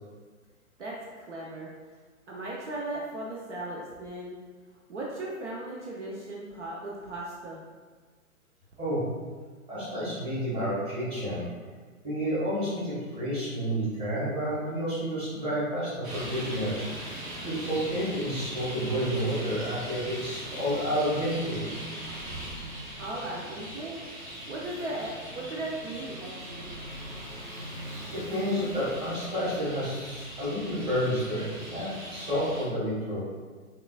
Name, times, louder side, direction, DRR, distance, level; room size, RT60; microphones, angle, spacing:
voice 1, 0.8-1.7 2.3-4.4 4.9-7.6 23.0-24.0 24.5-26.7, right 1 dB, 55° right, -4 dB, 0.7 m, -37 dB
voice 2, 9.7-11.5 12.0-16.9 17.4-21.6 27.8-33.2, equal, 15° right, -10 dB, 1.3 m, -30 dB
Traffic noise roadway noise, 16.0-32.6, right 1 dB, 35° right, 1.2 m, -40 dB
5.8 x 2.4 x 2.3 m, 1.4 s
figure-of-eight pair, 120°, 43 cm